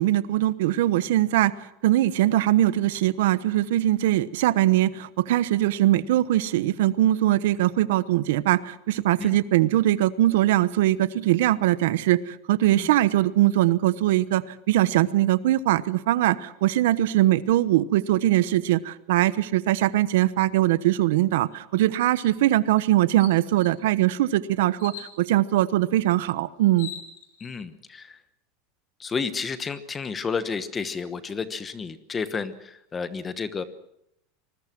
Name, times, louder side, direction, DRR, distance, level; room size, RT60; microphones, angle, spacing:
voice 1, 0.0-1.5 1.8-26.9, right 14 dB, 75° right, 16 dB, 1.0 m, -21 dB
sound 1, 22.2-22.3 22.8-22.9 23.2-23.8 24.8-25.2 26.3-26.4 26.6-27.5, left 9 dB, 65° left, 3.9 m, -41 dB
voice 2, 27.4-28.2 29.0-33.6, left 5 dB, 15° left, 13 dB, 1.1 m, -31 dB
26.0 x 20.5 x 6.1 m, 0.77 s
supercardioid pair, 170°, 0 cm